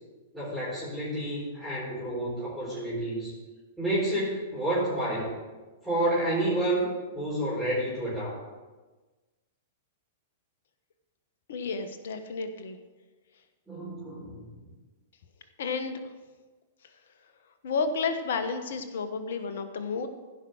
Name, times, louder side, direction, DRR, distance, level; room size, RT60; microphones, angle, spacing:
voice 1, 0.3-3.3 3.8-5.3 5.8-8.4 13.7-14.5, right 1 dB, ahead, -9 dB, 4.1 m, -29 dB
voice 2, 11.5-12.8 15.6-16.0 17.6-20.1, left 5 dB, 65° left, 8 dB, 1.2 m, -31 dB
15.5 x 5.6 x 6.3 m, 1.3 s
figure-of-eight pair, 105°, 0 cm